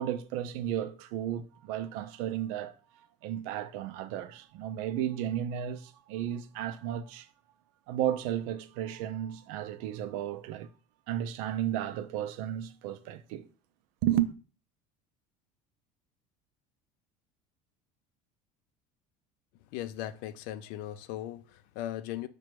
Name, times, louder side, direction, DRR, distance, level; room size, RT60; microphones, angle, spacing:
voice 1, 0.0-2.7 3.2-7.3 7.9-10.7 11.1-13.5 14.0-14.3, right 11 dB, 70° right, 0.5 m, -33 dB
voice 2, 19.7-22.3, left 12 dB, 65° left, 0.4 m, -38 dB
5.0 x 2.2 x 4.5 m
cardioid pair, 150°, 15 cm